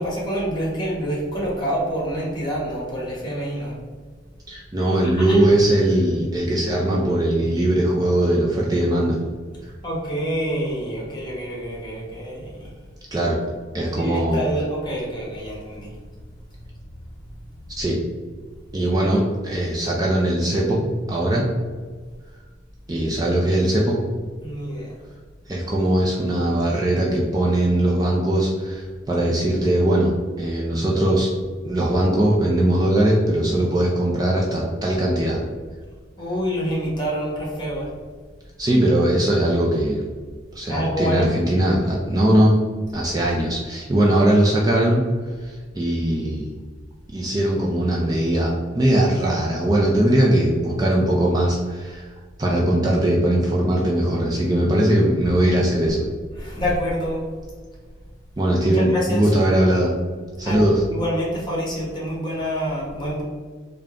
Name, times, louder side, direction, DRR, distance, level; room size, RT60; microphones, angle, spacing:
voice 1, 0.0-3.8 5.0-5.5 9.8-12.7 13.9-16.0 17.7-17.8 18.8-19.2 24.4-25.0 36.2-37.9 40.7-41.3 56.3-57.3 58.6-59.3 60.4-63.2, equal, 25° left, -5 dB, 1.1 m, -27 dB
voice 2, 4.5-9.2 13.1-13.4 13.7-14.4 17.8-18.0 18.7-21.5 22.9-24.0 25.5-31.3 31.6-35.4 38.6-40.0 40.5-42.6 42.9-45.1 45.4-46.5 47.1-52.1 52.4-56.0 58.4-59.9 60.4-60.8, right 1 dB, 20° right, -4 dB, 0.4 m, -20 dB
3.6 x 2.2 x 3.7 m, 1.5 s
head